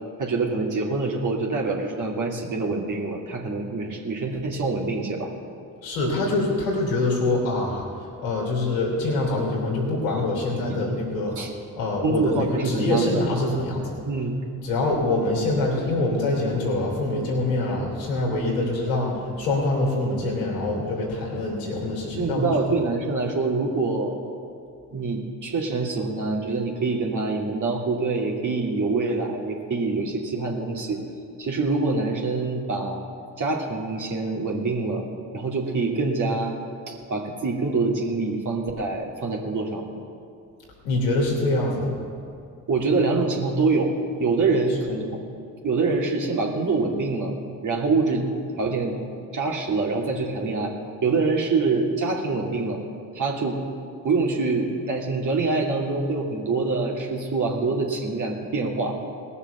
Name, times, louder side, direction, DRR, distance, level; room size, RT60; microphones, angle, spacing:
voice 1, 0.2-5.3 10.7-10.8 11.4-11.5 12.0-13.2 14.1-14.4 22.1-24.2 24.9-31.0 31.4-33.0 33.4-35.0 35.3-36.6 36.9-39.9 42.7-43.9 44.2-45.2 45.6-47.3 47.6-48.2 48.6-49.0 49.3-50.7 51.0-52.8 53.1-53.6 54.0-59.0, right 3 dB, 50° right, -1 dB, 2.6 m, -25 dB
voice 2, 5.8-7.8 8.2-11.4 11.8-14.0 14.6-22.5 40.8-42.1, left 2 dB, 90° left, -3 dB, 3.3 m, -25 dB
19.0 x 6.9 x 6.9 m, 2.5 s
hypercardioid pair, 45°, 41 cm